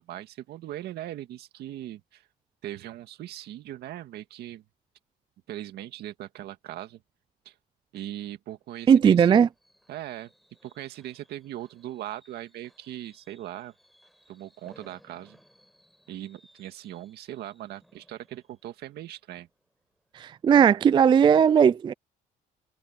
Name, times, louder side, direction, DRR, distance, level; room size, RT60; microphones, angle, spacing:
voice 1, 0.1-2.2 2.6-4.6 5.5-7.0 7.5-7.6 7.9-9.4 9.9-10.3 10.6-13.7 14.3-15.4 16.1-19.5, right 13 dB, 75° right, 2.0 m, -39 dB
Fireworks, 8.5-20.2 20.6-20.9 21.2-21.3, equal, ahead, 7.7 m, -62 dB
voice 2, 8.9-9.5 20.1-21.9, right 7 dB, 30° right, 0.3 m, -18 dB
cardioid pair, 110°, 17 cm